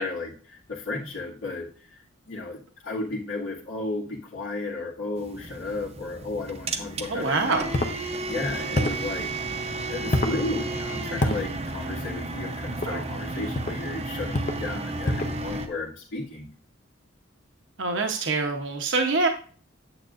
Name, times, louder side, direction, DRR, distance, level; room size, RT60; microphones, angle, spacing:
voice 1, 0.0-7.8 8.3-9.3 9.9-16.5, left 2 dB, 80° left, -6 dB, 2.0 m, -34 dB
sound 1, 5.2-15.7, right 2 dB, 30° right, 0.7 m, -33 dB
voice 2, 7.1-7.7 12.9-13.1 17.8-19.3, right 3 dB, 65° right, 3 dB, 0.9 m, -25 dB
sound 2, 7.7-8.0 8.7-9.1 10.1-10.4 11.2-11.4 12.7-12.9 13.5-13.8 14.3-14.6 15.0-15.4, left 1 dB, 35° left, 0.7 m, -26 dB
8.9 x 7.9 x 2.5 m, 0.42 s
head